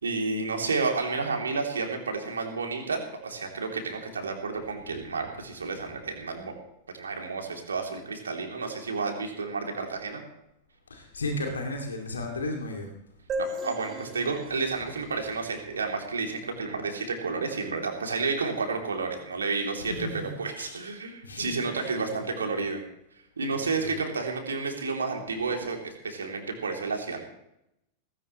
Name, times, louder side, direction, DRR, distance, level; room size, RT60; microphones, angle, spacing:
voice 1, 0.0-6.5 6.9-10.2 13.4-22.8 23.4-27.2, right 4 dB, 70° right, 3 dB, 3.0 m, -31 dB
voice 2, 10.9-12.9 19.8-20.0 20.3-20.8 21.2-22.5 23.5-24.0, left 2 dB, 75° left, 2 dB, 2.5 m, -35 dB
sound 1, 13.3-16.8, right 1 dB, 30° right, 2.5 m, -38 dB
18.5 x 16.5 x 3.2 m, 0.80 s
figure-of-eight pair, 90°, 0 cm